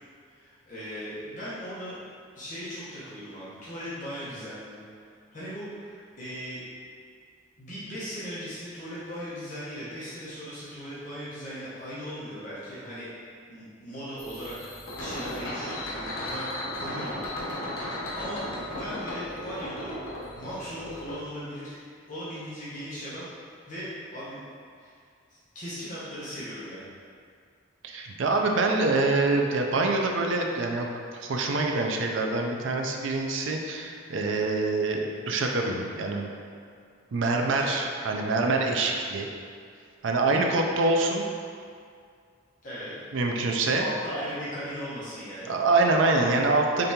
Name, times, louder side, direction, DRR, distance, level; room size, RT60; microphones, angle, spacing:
voice 1, 0.3-2.0 2.3-4.8 5.3-6.6 7.6-13.1 13.5-17.7 18.1-20.0 20.3-21.8 22.1-23.3 23.7-24.4 24.8-24.9 25.3-26.8 37.6-37.7 42.6-42.9 43.7-45.6, equal, 40° left, -11 dB, 1.0 m, -38 dB
sound 1, 14.2-21.2, left 1 dB, 85° left, 1.0 m, -35 dB
voice 2, 27.8-36.3 37.1-39.3 40.0-41.2 43.1-43.9 45.5-46.9, right 3 dB, 75° right, 2 dB, 0.5 m, -25 dB
5.2 x 3.3 x 2.8 m, 2.2 s
head